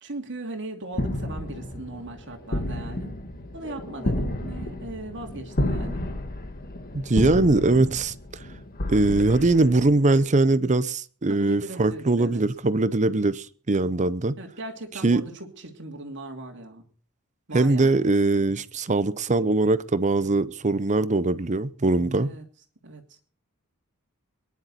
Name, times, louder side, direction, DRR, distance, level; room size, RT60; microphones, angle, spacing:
voice 1, 0.0-3.1 3.5-6.0 11.3-12.4 14.4-16.9 17.5-18.1 22.2-22.4 22.8-23.2, right 2 dB, 55° right, 2.8 m, -38 dB
sound 1, 0.9-10.2, left 1 dB, 40° left, 1.6 m, -31 dB
voice 2, 6.9-8.1 8.9-14.3 15.0-15.2 17.5-22.3, right 2 dB, 35° right, 0.7 m, -21 dB
23.0 x 10.5 x 4.3 m
head